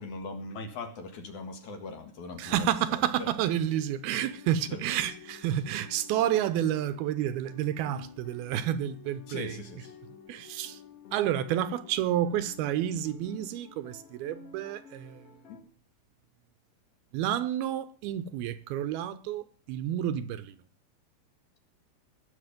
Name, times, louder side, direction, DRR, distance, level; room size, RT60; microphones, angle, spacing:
voice 1, 0.0-3.3 4.7-4.8 9.3-10.0 15.5-15.6, left 3 dB, 55° left, 2.7 m, -40 dB
voice 2, 2.4-9.6 10.3-10.8 11.1-15.2 17.1-20.6, right 11 dB, 80° right, 2.5 m, -30 dB
sound 1, 3.4-15.6, left 7 dB, 40° left, 3.2 m, -51 dB
19.5 x 7.6 x 5.1 m
omnidirectional pair, 4.7 m